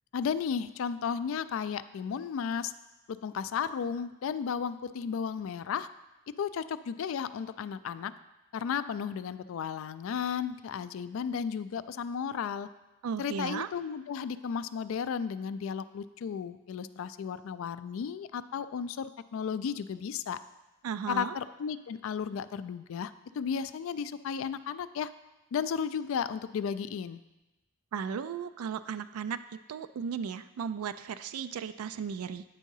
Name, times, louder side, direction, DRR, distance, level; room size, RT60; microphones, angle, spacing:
voice 1, 0.1-2.7 3.1-5.9 6.4-8.1 8.5-12.7 13.2-20.4 21.1-25.1 25.5-27.2, left 7 dB, 65° left, 14 dB, 0.3 m, -34 dB
voice 2, 13.0-13.7 20.8-21.4 27.9-32.4, right 6 dB, 85° right, 12 dB, 0.3 m, -36 dB
9.0 x 3.7 x 5.4 m, 1.0 s
head